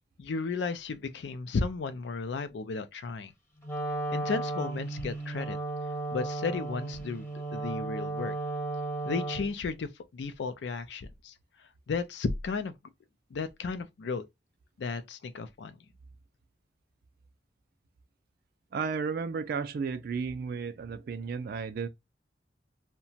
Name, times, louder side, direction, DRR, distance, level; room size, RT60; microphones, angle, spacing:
voice 1, 0.2-3.3 4.1-5.6 6.1-8.3 9.1-11.3 11.9-12.7 13.3-14.2 14.8-15.7, left 4 dB, 70° left, 0.4 m, -34 dB
Wind instrument woodwind instrument, 3.6-9.6, right 2 dB, 15° left, 0.7 m, -34 dB
voice 2, 18.7-21.9, right 5 dB, 55° right, 0.3 m, -33 dB
2.8 x 2.2 x 2.6 m
head